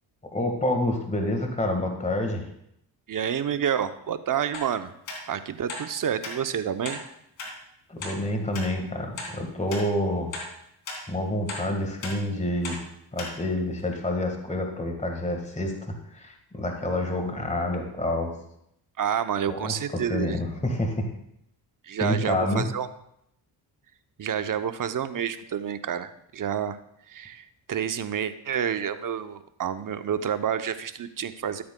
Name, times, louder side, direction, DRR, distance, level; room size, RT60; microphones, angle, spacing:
voice 1, 0.3-2.5 7.9-10.3 11.1-12.8 13.1-18.3 19.5-21.1 22.0-22.7, left 1 dB, 15° left, 3 dB, 1.6 m, -28 dB
voice 2, 3.1-4.9 5.3-7.0 19.0-20.4 21.8-22.9 24.2-26.8 27.1-31.6, right 8 dB, 45° right, 11 dB, 0.7 m, -29 dB
sound 1, 4.5-4.7 5.1-5.2 5.7-5.9 6.2-6.4 6.8-7.0 7.4-7.5 8.0-8.1 8.5-8.7 9.2-9.3 9.7-9.9 10.3-10.5 10.9-11.0 11.5-11.6 12.0-12.2 12.6-12.8 13.2-13.3 13.8-13.9, left 3 dB, 75° left, 2.4 m, -35 dB
12.5 x 8.5 x 2.2 m, 0.75 s
cardioid pair, 60°, 47 cm